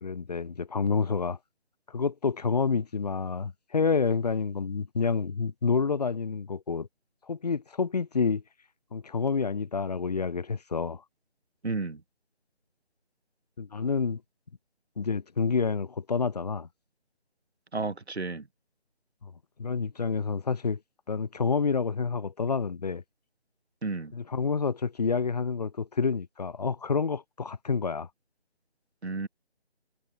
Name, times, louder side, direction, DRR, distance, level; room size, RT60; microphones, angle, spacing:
voice 1, 0.0-1.4 1.9-6.9 7.3-8.4 8.9-11.0 13.6-14.2 15.0-16.7 19.2-19.3 19.6-20.8 21.1-23.0 24.1-28.1, left 5 dB, 40° left, 1.8 m, -28 dB
voice 2, 11.6-12.0 17.7-18.4 23.8-24.1 29.0-29.3, right 3 dB, 80° right, 2.3 m, -32 dB
figure-of-eight pair, 165°, 32 cm